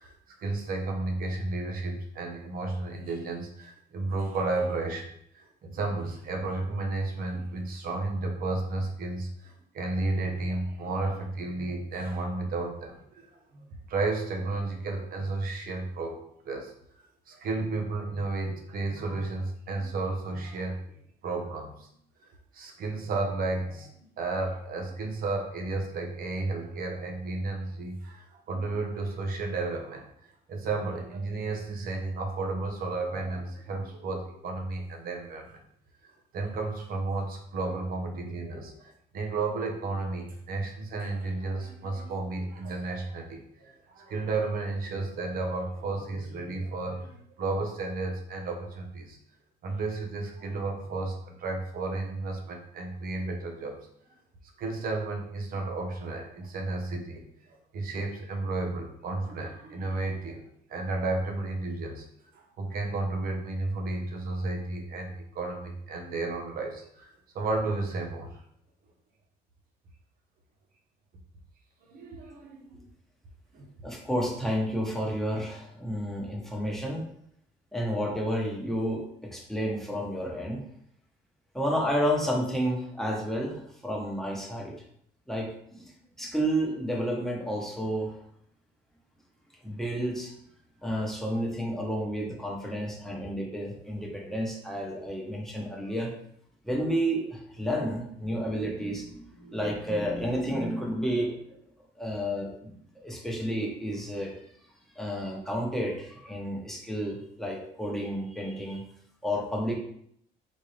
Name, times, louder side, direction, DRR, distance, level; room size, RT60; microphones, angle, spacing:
voice 1, 0.0-16.7 17.3-20.8 21.2-21.9 22.2-35.5 36.0-49.2 49.6-53.8 54.6-62.0 62.3-68.4 71.8-72.8 73.5-73.7, right 3 dB, 60° right, 2 dB, 1.1 m, -33 dB
voice 2, 73.8-77.1 77.7-80.6 81.5-84.7 85.3-85.9 86.2-88.2 89.6-90.3 90.8-96.1 96.6-101.6 102.0-104.3 105.0-108.8 109.2-109.7, equal, ahead, -2 dB, 1.2 m, -31 dB
4.3 x 3.5 x 3.3 m, 0.68 s
cardioid pair, 110°, 17 cm